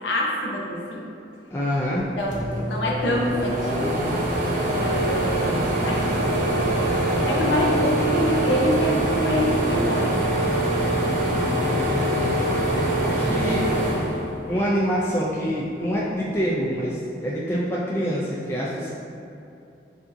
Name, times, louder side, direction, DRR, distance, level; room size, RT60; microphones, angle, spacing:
voice 1, 0.0-1.0 2.2-3.9 4.3-4.4 4.7-6.5 7.1-10.4, left 1 dB, 85° left, -2 dB, 0.7 m, -26 dB
voice 2, 1.5-2.1 11.5-13.7 14.5-18.9, equal, 15° left, -6 dB, 0.4 m, -26 dB
sound 1, 2.0-2.1 2.3-14.9 15.3-16.5, right 1 dB, 45° right, 0.7 m, -24 dB
6.9 x 2.7 x 2.6 m, 2.6 s
head